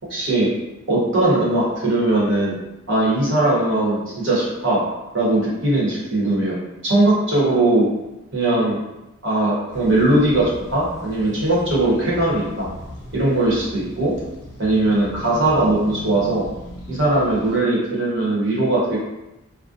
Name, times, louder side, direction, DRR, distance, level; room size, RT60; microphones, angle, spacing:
voice 1, 0.1-0.5 0.9-2.6 2.9-6.5 6.8-7.9 8.3-8.8 9.2-12.7 13.1-14.1 14.6-16.4 16.9-19.0, right 2 dB, 60° right, -6 dB, 0.8 m, -19 dB
sound 1, 9.7-17.6, left 1 dB, 85° left, 0.6 m, -38 dB
2.4 x 2.1 x 2.5 m, 0.96 s
head